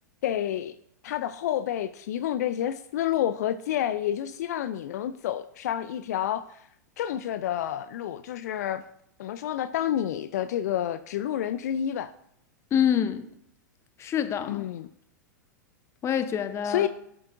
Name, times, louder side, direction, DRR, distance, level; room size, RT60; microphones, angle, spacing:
voice 1, 0.2-0.8 1.0-6.7 7.0-8.8 9.2-12.1 14.5-14.9 16.6-16.9, left 11 dB, 60° left, 0.4 m, -29 dB
voice 2, 12.7-13.2 14.0-14.6 16.0-16.9, left 9 dB, 30° left, 0.8 m, -26 dB
12.0 x 7.7 x 2.5 m
figure-of-eight pair, 100°, 10 cm